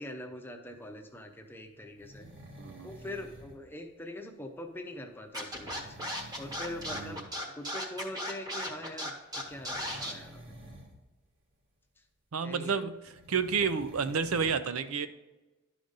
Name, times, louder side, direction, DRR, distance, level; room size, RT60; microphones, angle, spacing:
voice 1, 0.0-2.3 2.8-6.0 6.4-7.2 7.6-10.4 12.4-12.8, left 1 dB, 10° left, 4 dB, 0.6 m, -43 dB
sound 1, 2.0-3.6 5.5-7.3 7.6-7.9 9.3-11.0 13.1-14.5, right 1 dB, 55° right, 1.7 m, -50 dB
voice 2, 2.6-2.9 6.9-7.2 12.3-15.1, right 6 dB, 85° right, 11 dB, 0.5 m, -30 dB
Scratching (performance technique), 5.3-10.1, equal, 20° right, 1.0 m, -36 dB
11.5 x 5.1 x 3.9 m, 1.1 s
head